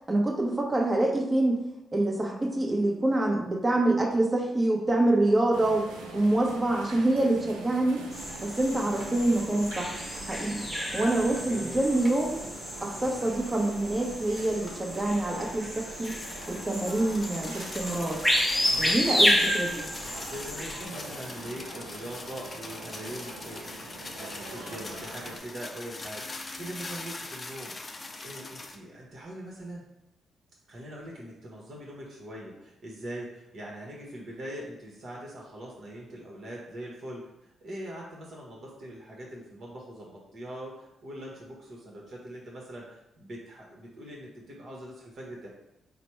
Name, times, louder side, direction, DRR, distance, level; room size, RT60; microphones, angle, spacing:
voice 1, 0.1-1.6 1.9-5.9 6.1-8.0 8.4-10.0 10.3-10.7 10.9-12.4 12.8-16.2 16.5-18.2 18.8-19.8, right 1 dB, 30° right, -1 dB, 1.1 m, -26 dB
sound 1, 5.5-25.4, right 3 dB, 85° right, 0.5 m, -44 dB
sound 2, 8.1-20.8, equal, 5° left, 1.1 m, -31 dB
voice 2, 11.2-11.8 13.0-13.3 18.7-19.0 20.0-23.8 24.2-29.9 30.7-45.5, right 1 dB, 55° right, -3 dB, 1.1 m, -42 dB
sound 3, 16.0-28.8, left 3 dB, 35° left, 0.5 m, -42 dB
4.1 x 2.2 x 4.5 m, 0.87 s
hypercardioid pair, 45°, 0 cm